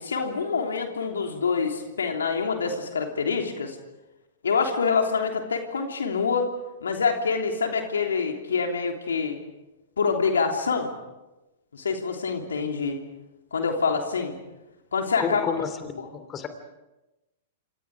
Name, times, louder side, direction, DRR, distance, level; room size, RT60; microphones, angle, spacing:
voice 1, 0.0-3.8 4.4-6.5 6.8-9.4 10.0-10.9 11.7-13.0 13.5-14.4 14.9-15.4 16.0-16.1, left 5 dB, 80° left, 3 dB, 3.3 m, -26 dB
voice 2, 15.2-16.5, left 7 dB, 25° left, 9 dB, 3.0 m, -31 dB
27.5 x 27.5 x 5.0 m, 1.0 s
hypercardioid pair, 110°, 0 cm